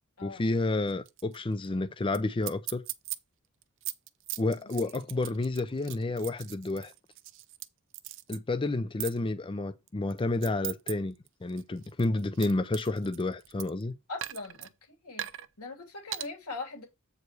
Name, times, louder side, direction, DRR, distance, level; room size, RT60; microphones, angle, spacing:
voice 1, 0.2-2.8 4.4-6.9 8.3-11.1 11.4-13.9, left 2 dB, 25° left, 0.5 m, -30 dB
sound 1, 0.9-1.4 1.6-1.7 2.1-2.2 2.4-3.2 3.6-7.7 7.9-8.4 9.0-9.2 9.9-10.9 11.3-13.8 14.2-14.7 15.2-15.5 16.1-16.3, right 14 dB, 60° right, 0.6 m, -39 dB
voice 2, 14.1-14.7 15.0-15.3 15.6-16.9, left 3 dB, 85° left, 2.9 m, -40 dB
8.0 x 4.9 x 4.5 m
head